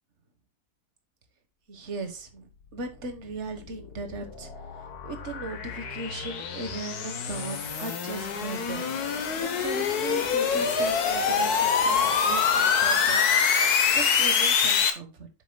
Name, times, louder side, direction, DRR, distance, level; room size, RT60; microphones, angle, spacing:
voice 1, 1.7-15.3, right 3 dB, 45° right, 7 dB, 1.7 m, -38 dB
sound 1, 3.6-14.9, left 6 dB, 75° left, 1.6 m, -25 dB
9.3 x 7.2 x 2.3 m, 0.30 s
omnidirectional pair, 1.7 m